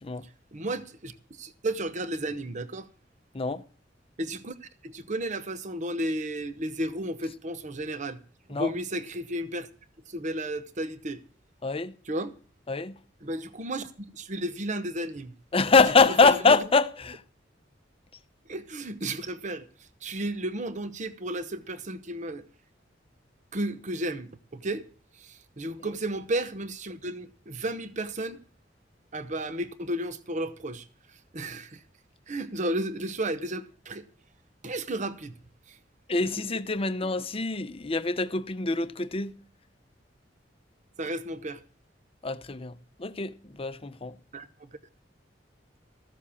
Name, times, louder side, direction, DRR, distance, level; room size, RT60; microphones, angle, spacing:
voice 1, 0.2-2.9 4.2-8.2 8.5-9.7 10.1-11.2 12.0-12.4 13.2-15.3 16.1-16.6 18.5-22.4 23.5-24.9 25.1-28.4 29.1-31.8 32.3-34.1 34.6-35.3 35.7-35.8 36.2-36.4 37.0-37.1 41.0-41.6 44.3-44.7, right 1 dB, 40° right, 0.9 m, -33 dB
voice 2, 11.6-11.9 12.7-13.0 15.5-17.2 36.1-39.4 42.2-44.2, left 4 dB, 30° left, 0.7 m, -24 dB
14.5 x 7.3 x 7.1 m
head